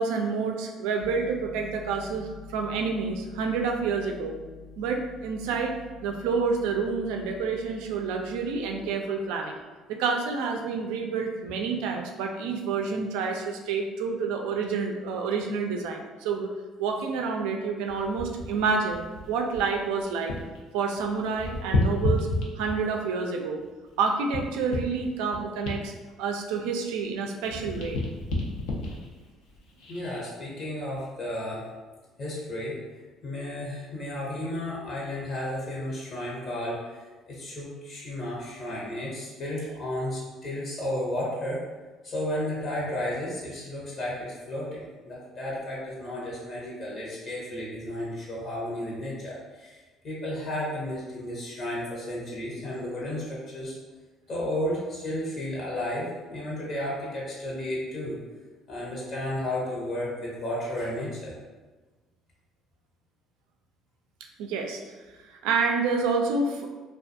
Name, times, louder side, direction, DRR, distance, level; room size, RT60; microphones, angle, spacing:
voice 1, 0.0-4.4 4.8-5.8 6.0-9.6 9.9-16.5 16.8-20.3 20.7-22.3 22.5-23.6 24.0-25.9 26.2-28.0 64.4-64.9 65.4-66.7, right 5 dB, 80° right, 3 dB, 0.3 m, -28 dB
sound 1, 1.0-8.9, left 3 dB, 20° left, 0.6 m, -47 dB
sound 2, 17.9-20.6 20.9-23.0 23.6-27.1 27.4-30.2 30.8-31.0, left 2 dB, 75° left, 0.5 m, -32 dB
voice 2, 29.9-31.6 32.2-41.6 42.0-49.8 50.0-53.7 54.3-58.2 58.7-61.4, left 1 dB, 55° left, -5 dB, 0.9 m, -33 dB
2.4 x 2.2 x 2.6 m, 1.3 s
hypercardioid pair, 60°, 0 cm